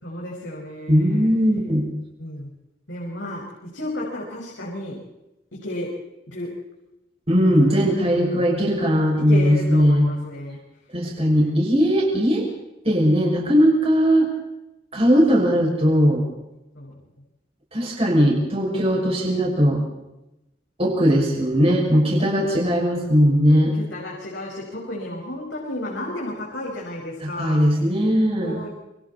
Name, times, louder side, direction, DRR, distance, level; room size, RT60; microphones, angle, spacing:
voice 1, 0.0-1.3 2.2-2.5 2.9-3.4 3.7-5.0 5.6-5.9 6.3-6.5 7.5-7.8 8.1-8.5 9.2-10.6 11.3-11.6 16.8-16.9 21.1-21.4 22.1-27.6 28.4-28.7, left 1 dB, 75° left, -3 dB, 5.4 m, -33 dB
voice 2, 0.9-1.8 7.3-10.1 10.9-12.5 12.8-14.3 14.9-16.2 17.7-19.8 20.8-23.8 27.2-28.5, equal, 35° right, -2 dB, 6.3 m, -19 dB
28.0 x 24.0 x 4.3 m, 0.92 s
head